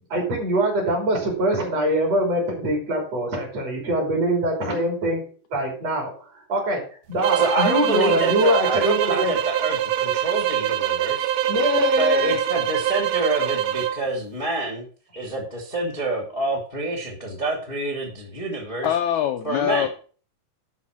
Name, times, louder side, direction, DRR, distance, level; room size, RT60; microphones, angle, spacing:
voice 1, 0.1-5.2 5.5-6.8 7.1-9.3 11.5-12.3, equal, 45° right, 0 dB, 4.0 m, -23 dB
sound 1, 7.2-14.0, right 11 dB, 90° right, 1.6 m, -24 dB
voice 2, 7.3-11.3 12.0-14.9 15.1-18.9 19.4-19.9, right 2 dB, 25° left, 0 dB, 1.3 m, -27 dB
voice 3, 18.8-19.9, left 10 dB, 80° left, 6 dB, 1.7 m, -23 dB
11.5 x 4.8 x 6.0 m, 0.40 s
omnidirectional pair, 4.1 m